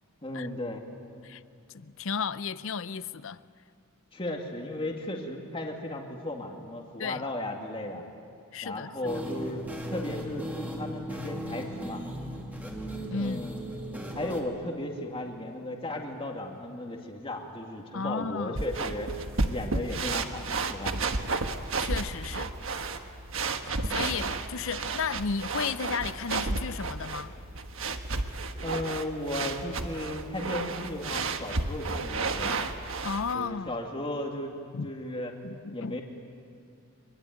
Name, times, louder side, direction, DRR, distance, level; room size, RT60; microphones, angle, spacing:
voice 1, 0.2-0.8 4.1-8.0 8.6-9.6 9.9-12.0 13.1-13.6 14.1-19.1 19.5-21.0 23.7-24.1 28.6-32.6 33.3-34.5 34.8-35.3 35.7-36.0, left 1 dB, 25° left, 2.3 m, -35 dB
voice 2, 1.7-3.4 7.0-7.2 8.5-8.9 13.1-13.5 17.9-18.6 20.8-21.0 21.8-22.5 23.6-27.3 33.0-33.7 34.7-34.9 35.4-36.0, left 5 dB, 60° left, 0.6 m, -33 dB
sound 1, 9.0-14.4, equal, 10° right, 2.8 m, -37 dB
sound 2, 18.5-33.3, right 3 dB, 60° right, 1.4 m, -32 dB
24.5 x 23.5 x 9.3 m
head